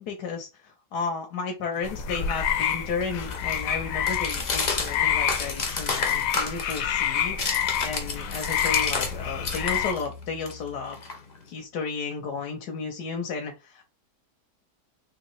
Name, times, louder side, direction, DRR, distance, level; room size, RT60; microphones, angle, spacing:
voice 1, 0.0-11.0 11.4-13.8, left 5 dB, 90° left, 2 dB, 1.4 m, -33 dB
sound 1, 1.8-9.9, left 9 dB, 70° left, 0.9 m, -28 dB
sound 2, 1.8-9.2 9.4-11.6, left 4 dB, 45° left, 0.5 m, -32 dB
sound 3, 2.6-6.5 6.9-11.4, left 5 dB, 25° right, 1.3 m, -43 dB
3.6 x 3.1 x 3.0 m, 0.26 s
omnidirectional pair, 1.7 m